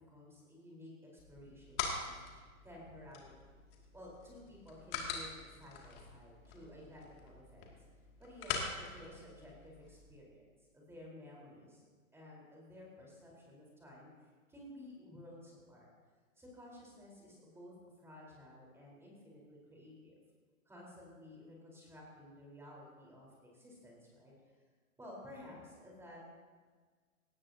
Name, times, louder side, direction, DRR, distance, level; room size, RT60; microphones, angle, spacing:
voice 1, 0.1-0.9 1.3-2.1 2.6-3.3 3.9-7.7 8.2-10.5 10.7-11.9 12.1-14.1 14.5-15.9 16.4-20.2 20.7-24.3 25.0-26.2, left 1 dB, 5° right, -4 dB, 4.2 m, -54 dB
sound 1, 1.2-10.1, left 5 dB, 40° left, 2.5 m, -44 dB
18.5 x 14.5 x 2.9 m, 1.5 s
hypercardioid pair, 120°, 42 cm